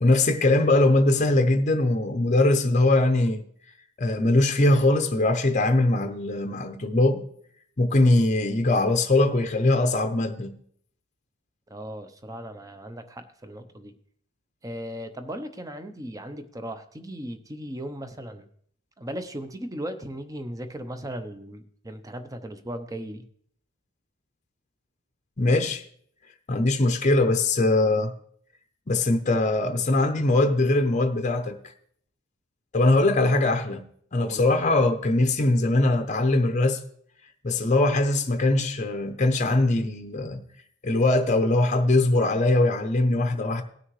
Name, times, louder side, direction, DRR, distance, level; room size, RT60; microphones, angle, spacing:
voice 1, 0.0-3.4 4.0-7.3 7.8-10.6 25.4-25.8 26.5-28.1 28.9-31.6 32.7-36.8 37.4-40.4 40.8-43.6, left 2 dB, 35° left, 0.7 m, -21 dB
voice 2, 11.7-13.9 14.6-18.5 19.0-23.3 34.2-34.4, right 1 dB, 15° right, 0.7 m, -37 dB
18.0 x 6.3 x 3.2 m
head